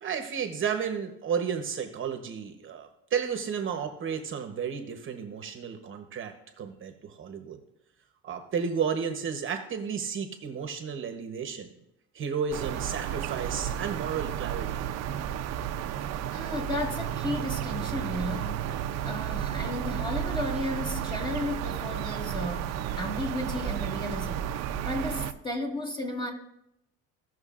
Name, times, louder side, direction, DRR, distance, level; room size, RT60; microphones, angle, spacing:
voice 1, 0.0-7.6 8.2-11.7 12.1-14.9, right 7 dB, 40° right, 1.0 m, -32 dB
sound 1, 12.5-25.3, right 10 dB, 55° right, 0.6 m, -32 dB
voice 2, 16.3-18.7 19.0-26.3, left 1 dB, 15° left, 1.8 m, -34 dB
16.5 x 6.3 x 2.5 m
cardioid pair, 110°, 31 cm